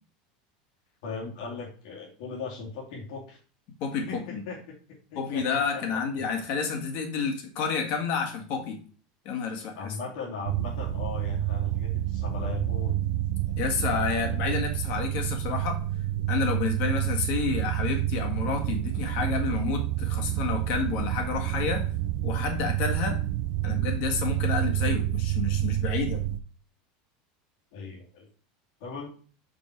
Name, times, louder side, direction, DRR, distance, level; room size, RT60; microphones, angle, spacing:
voice 1, 1.0-3.4 4.0-5.8 6.1-6.3 9.7-13.0 13.4-13.5 14.0-14.4 27.7-28.3 28.8-29.1, left 4 dB, 65° left, -3 dB, 2.3 m, -38 dB
voice 2, 3.8-4.4 5.1-8.8 9.2-9.9 13.6-15.8 16.3-21.9 22.2-23.2 23.6-26.2, left 5 dB, 45° left, 3 dB, 1.7 m, -30 dB
sound 1, 10.4-26.4, right 14 dB, 50° right, 0.5 m, -29 dB
6.8 x 5.4 x 4.6 m, 0.41 s
supercardioid pair, 180°, 4 cm